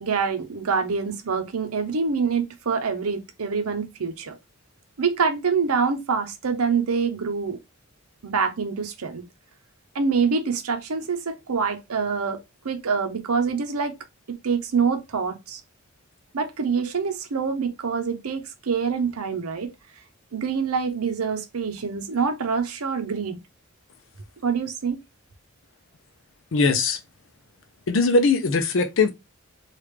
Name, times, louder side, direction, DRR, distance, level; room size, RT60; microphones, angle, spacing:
voice 1, 0.0-4.4 5.0-7.6 8.2-9.2 9.9-13.9 14.3-15.6 16.3-19.7 20.3-23.4 24.4-25.0, right 5 dB, 90° right, 0.7 m, -25 dB
voice 2, 26.5-27.0 27.9-29.1, left 3 dB, 60° left, 0.5 m, -20 dB
3.2 x 2.4 x 3.2 m
head